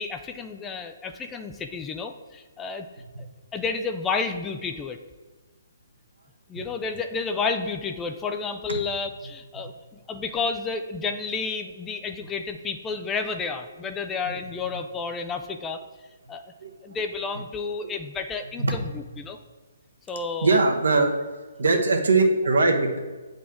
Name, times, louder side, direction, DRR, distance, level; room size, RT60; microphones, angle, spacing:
voice 1, 0.0-2.9 3.5-5.0 6.5-15.8 16.3-16.5 16.8-19.4 20.1-20.6, left 4 dB, 15° left, 6 dB, 0.3 m, -31 dB
voice 2, 20.4-21.1 21.6-23.0, right 3 dB, 70° right, 3 dB, 1.1 m, -20 dB
8.4 x 4.0 x 3.6 m, 1.3 s
figure-of-eight pair, 135°, 0 cm